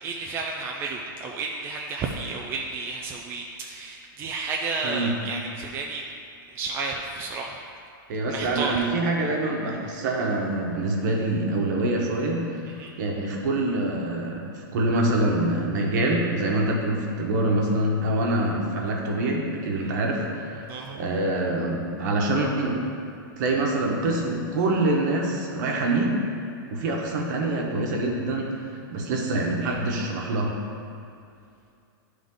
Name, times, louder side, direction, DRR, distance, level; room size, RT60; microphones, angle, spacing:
voice 1, 0.0-6.0 6.5-7.6 8.3-8.9 12.7-12.9 19.7-20.0 20.7-21.0 29.6-29.8, right 4 dB, 20° right, 0 dB, 0.4 m, -32 dB
voice 2, 8.1-12.6 13.0-20.6 20.9-22.8 23.4-26.2 26.7-30.6, right 2 dB, 55° right, 0 dB, 1.2 m, -25 dB
10.0 x 3.5 x 3.7 m, 2.5 s
supercardioid pair, 150°, 12 cm